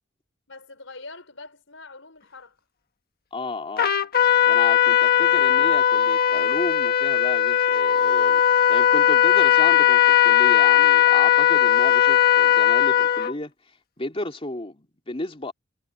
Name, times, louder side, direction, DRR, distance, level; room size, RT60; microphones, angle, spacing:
voice 1, 0.5-2.6 5.2-5.3, left 3 dB, 75° left, 5.9 m, -43 dB
voice 2, 3.3-4.0 4.5-8.4 8.7-13.5 14.0-15.5, left 2 dB, 30° left, 3.0 m, -33 dB
Trumpet, 3.8-13.3, left 10 dB, 50° left, 1.4 m, -18 dB
head